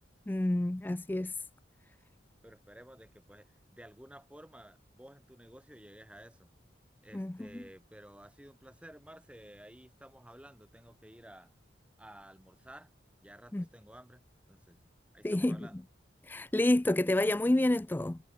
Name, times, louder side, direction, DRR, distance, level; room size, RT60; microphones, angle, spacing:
voice 1, 0.3-1.4 7.1-7.6 13.5-13.7 15.2-15.8 16.2-18.2, left 1 dB, 10° left, 0.3 m, -29 dB
voice 2, 2.4-6.5 7.0-11.5 12.0-12.9 13.2-14.2 14.5-14.8 15.1-15.8, right 1 dB, 5° right, 1.9 m, -53 dB
head